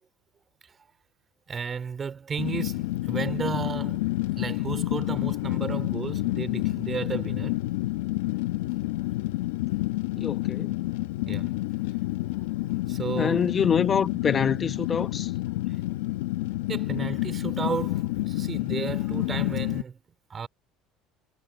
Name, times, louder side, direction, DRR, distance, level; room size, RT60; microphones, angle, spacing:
voice 1, 1.5-4.0 4.4-7.6 11.3-11.5 12.9-13.5 15.7-15.8 16.7-20.0 20.3-20.5, right 6 dB, 35° right, 2.7 m, -33 dB
Fire, 2.4-19.8, left 18 dB, 80° left, 1.1 m, -29 dB
voice 2, 10.2-10.8 13.2-15.3, left 7 dB, 35° left, 1.1 m, -26 dB
hypercardioid pair, 80°, 0 cm